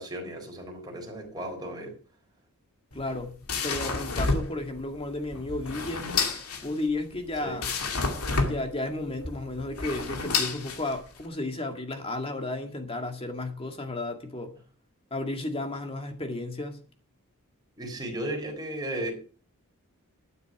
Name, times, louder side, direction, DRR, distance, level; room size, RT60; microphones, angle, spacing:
voice 1, 0.0-2.0 7.4-7.6 17.8-19.1, right 1 dB, 20° right, 4.0 m, -35 dB
sound 1, 2.9-11.3, left 4 dB, 80° left, 2.2 m, -30 dB
voice 2, 2.9-3.4 3.6-6.1 6.6-7.7 8.4-14.5 15.1-16.8, left 2 dB, 25° left, 2.0 m, -33 dB
12.0 x 9.9 x 4.8 m
head